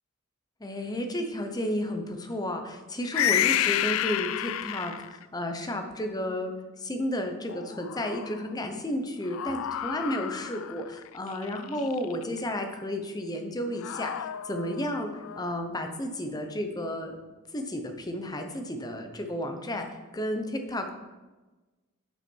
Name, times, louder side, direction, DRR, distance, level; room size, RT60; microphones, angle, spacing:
voice 1, 0.6-17.2 17.5-19.9 20.1-21.0, left 1 dB, 20° left, 5 dB, 0.9 m, -32 dB
sound 1, 3.1-5.2 7.5-8.5 9.3-12.4 13.8-15.6, left 11 dB, 85° left, 0.4 m, -30 dB
8.8 x 5.8 x 5.4 m, 1.2 s
head